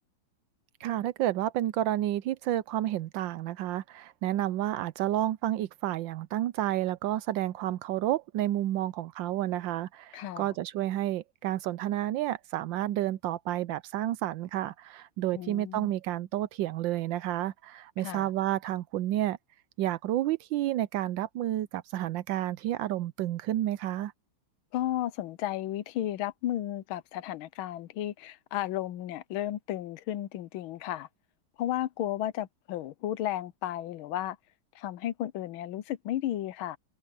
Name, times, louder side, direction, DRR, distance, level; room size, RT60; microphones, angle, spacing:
voice 1, 0.8-19.4 19.8-24.1, right 13 dB, 75° right, 1.2 m, -30 dB
voice 2, 10.1-10.5 15.3-15.9 18.0-18.3 24.7-31.1 31.6-34.4 34.7-36.8, left 13 dB, 80° left, 1.5 m, -33 dB
omnidirectional pair, 2.3 m